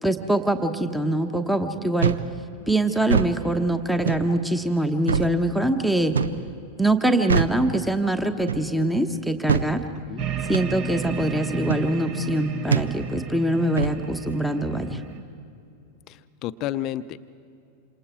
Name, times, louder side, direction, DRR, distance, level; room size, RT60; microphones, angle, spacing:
voice 1, 0.0-2.2 2.7-6.1 6.8-9.8 10.5-15.0, right 1 dB, ahead, 8 dB, 1.1 m, -23 dB
sound 1, 2.0-2.3 3.0-3.3 4.1-4.3 5.1-5.3 6.1-6.4 7.3-7.6 8.5-8.7 9.5-9.7 10.5-10.7 11.7-11.9 12.7-12.9 13.8-14.0, right 6 dB, 70° right, 0.5 m, -23 dB
sound 2, 10.2-15.2, right 5 dB, 40° right, 1.4 m, -33 dB
voice 2, 16.1-17.3, left 12 dB, 40° left, 14 dB, 0.7 m, -31 dB
27.5 x 27.0 x 4.6 m, 2.6 s
figure-of-eight pair, 90°, 0 cm